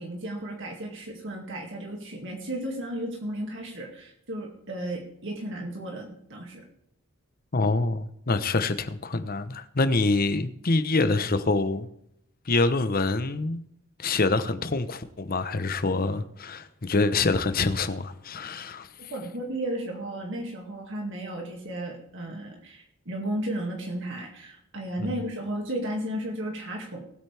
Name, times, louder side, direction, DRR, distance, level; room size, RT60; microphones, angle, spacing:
voice 1, 0.0-6.6 19.0-27.0, right 1 dB, 55° right, 2.2 m, -34 dB
voice 2, 7.5-11.9 12.5-13.6 14.0-18.9 25.0-25.1, left 3 dB, 40° left, 0.9 m, -26 dB
19.0 x 8.9 x 3.4 m
head